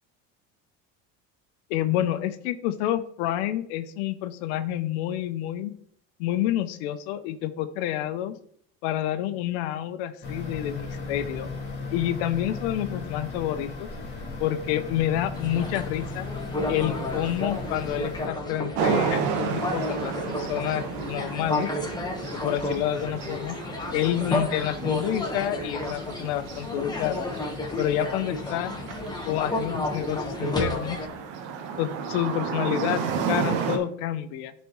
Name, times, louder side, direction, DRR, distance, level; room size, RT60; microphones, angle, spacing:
voice 1, 1.7-5.7 6.2-8.3 8.8-11.5 11.9-13.9 14.4-16.3 16.7-21.7 22.3-23.6 23.9-27.3 27.8-28.7 29.2-31.0 31.8-34.5, left 12 dB, 90° left, 10 dB, 0.6 m, -28 dB
sound 1, 10.2-18.3, left 4 dB, 30° left, 2.9 m, -36 dB
sound 2, 15.3-31.1, left 2 dB, 15° left, 1.3 m, -32 dB
sound 3, 18.7-33.8, right 6 dB, 80° right, 1.2 m, -32 dB
11.0 x 4.2 x 3.1 m, 0.64 s
supercardioid pair, 115°, 31 cm